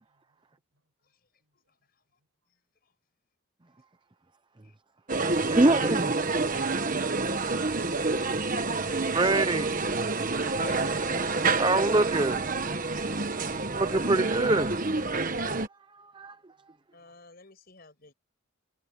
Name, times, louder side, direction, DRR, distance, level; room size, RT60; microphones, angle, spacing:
voice 1, 0.1-0.2 0.7-0.8 1.4-1.5 17.0-17.2, right 3 dB, 80° right, 5.9 m, -59 dB
sound 1, 5.1-15.7, right 3 dB, 40° right, 1.4 m, -28 dB
voice 2, 5.5-6.1 8.2-8.4 9.1-9.8 11.6-12.5 13.7-14.8 16.0-16.4, right 2 dB, 20° right, 0.6 m, -25 dB
voice 3, 10.6-10.9 16.9-18.1, left 3 dB, 45° left, 6.0 m, -45 dB
head